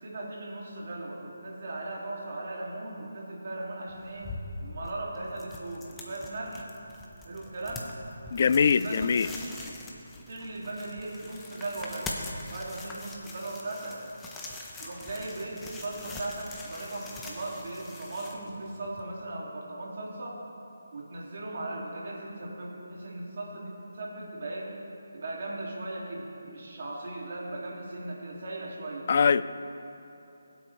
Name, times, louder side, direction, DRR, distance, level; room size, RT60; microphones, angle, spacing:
voice 1, 0.0-4.3 4.6-6.7 7.2-7.9 8.6-9.6 10.3-14.0 14.8-20.4 20.9-24.7 25.1-29.1, right 2 dB, 50° right, -3 dB, 2.3 m, -38 dB
sound 1, 3.9-19.0, left 2 dB, 10° left, 0.8 m, -43 dB
voice 2, 8.3-9.3 29.1-29.4, left 6 dB, 45° left, 14 dB, 0.3 m, -22 dB
21.0 x 7.8 x 3.2 m, 2.9 s
figure-of-eight pair, 160°, 0 cm